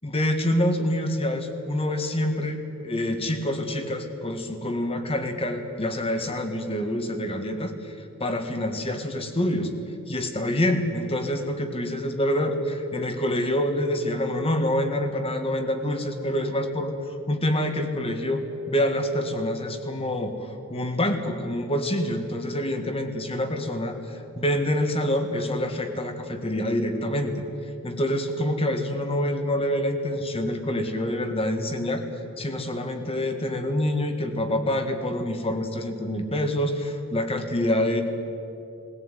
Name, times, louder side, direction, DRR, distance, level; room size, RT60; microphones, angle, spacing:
voice 1, 0.0-2.6 2.8-7.9 8.2-9.7 10.1-18.4 18.7-27.4 27.8-32.0 32.4-38.0, left 1 dB, 25° left, 6 dB, 1.7 m, -26 dB
20.5 x 17.0 x 9.2 m, 2.8 s
head